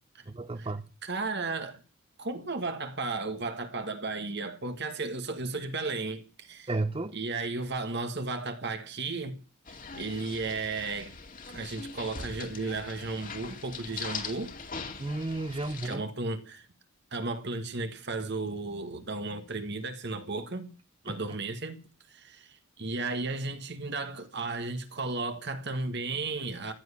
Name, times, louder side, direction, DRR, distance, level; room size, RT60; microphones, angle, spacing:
voice 1, 0.3-0.9 6.7-7.1 15.0-16.0 21.1-21.2, right 2 dB, 25° right, 0.7 m, -32 dB
voice 2, 1.0-1.8 2.2-6.7 7.1-9.4 9.7-11.2 11.5-14.5 15.8-16.7 17.1-20.7 21.0-21.8 22.1-26.7, right 3 dB, 50° right, 1.7 m, -34 dB
sound 1, 9.6-16.0, left 5 dB, 40° left, 2.2 m, -41 dB
15.0 x 10.5 x 7.0 m
head